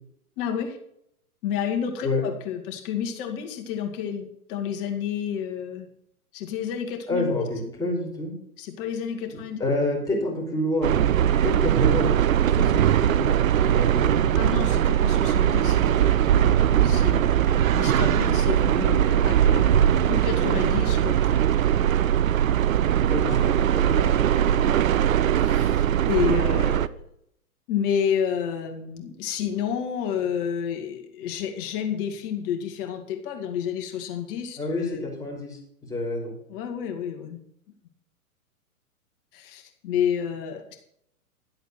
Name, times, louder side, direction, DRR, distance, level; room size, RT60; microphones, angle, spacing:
voice 1, 0.4-0.8 1.4-5.9 6.3-7.5 8.6-9.7 14.4-21.4 23.2-23.6 23.9-24.8 25.3-26.9 27.7-35.0 36.5-37.4 39.3-40.8, left 8 dB, 35° left, 4 dB, 2.2 m, -30 dB
voice 2, 7.1-8.3 9.6-11.0 11.4-12.2 12.6-14.5 23.1-24.1 34.6-36.3, left 2 dB, 5° left, -2 dB, 3.6 m, -28 dB
sound 1, 10.8-26.9, right 10 dB, 60° right, 0.7 m, -20 dB
12.0 x 8.0 x 6.3 m, 0.73 s
figure-of-eight pair, 120°, 45 cm